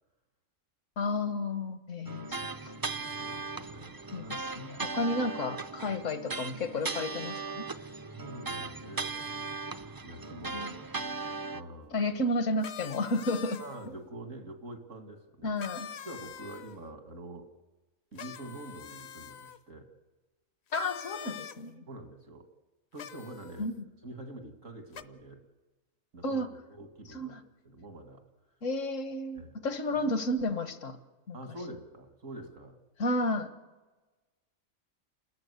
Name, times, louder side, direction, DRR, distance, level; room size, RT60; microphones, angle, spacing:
voice 1, 1.0-2.4 4.1-7.7 10.5-10.7 11.9-13.6 15.4-15.9 20.7-21.9 23.6-23.8 26.2-26.5 27.1-27.4 28.6-31.0 31.3-31.4 33.0-33.5, left 2 dB, 75° left, 9 dB, 1.8 m, -32 dB
sound 1, 2.0-11.6, right 3 dB, 30° right, 0.4 m, -38 dB
voice 2, 3.2-4.4 5.0-5.1 8.0-9.2 10.0-10.8 11.5-12.0 13.6-15.5 16.1-17.5 18.1-19.9 21.9-22.5 22.9-23.7 24.0-25.4 26.1-27.4 27.6-28.2 29.3-29.6 29.9-30.1 31.3-32.8, right 1 dB, 80° right, 6 dB, 2.4 m, -46 dB
sound 2, 12.6-13.9 15.6-16.8 18.1-19.6 20.7-21.6 23.0-23.7 24.9-25.0, left 8 dB, 60° left, 1.0 m, -44 dB
29.5 x 13.5 x 8.1 m, 1.2 s
omnidirectional pair, 1.3 m